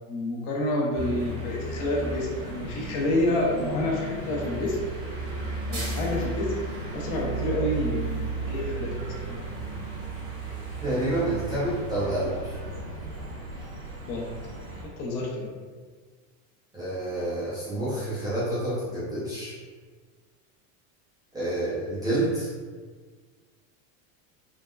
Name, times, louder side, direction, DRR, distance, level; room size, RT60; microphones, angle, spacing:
voice 1, 0.1-4.8 5.7-6.5 6.9-9.4 14.0-14.3 14.8-15.5, left 1 dB, 60° left, -3 dB, 0.8 m, -28 dB
sound 1, 0.9-14.8, right 3 dB, 60° right, 1.2 m, -34 dB
voice 2, 10.8-12.3 16.7-19.5 21.3-22.5, right 1 dB, 10° right, -11 dB, 0.4 m, -28 dB
3.7 x 2.1 x 2.3 m, 1.5 s
supercardioid pair, 155°, 41 cm